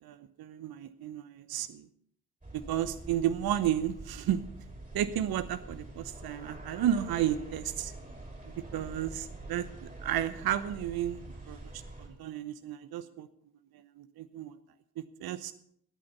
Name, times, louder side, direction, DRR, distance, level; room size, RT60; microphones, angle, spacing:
voice 1, 0.0-1.9 2.5-4.4 4.9-7.9 8.7-13.3 13.7-14.5 15.0-15.5, right 11 dB, 50° right, 14 dB, 1.0 m, -33 dB
sound 1, 2.4-12.1, right 2 dB, 15° right, 5.9 m, -46 dB
19.0 x 8.7 x 5.6 m, 0.68 s
figure-of-eight pair, 45°, 46 cm